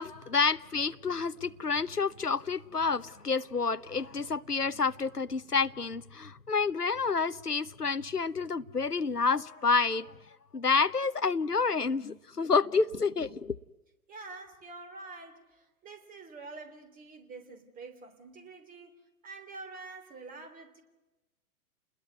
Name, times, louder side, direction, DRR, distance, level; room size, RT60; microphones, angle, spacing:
voice 1, 0.0-10.1 10.5-13.5, left 4 dB, 90° left, 1.0 m, -29 dB
voice 2, 14.1-19.0 19.2-20.8, right 3 dB, 20° right, 3.4 m, -47 dB
30.0 x 21.0 x 9.4 m
figure-of-eight pair, 110°, 45 cm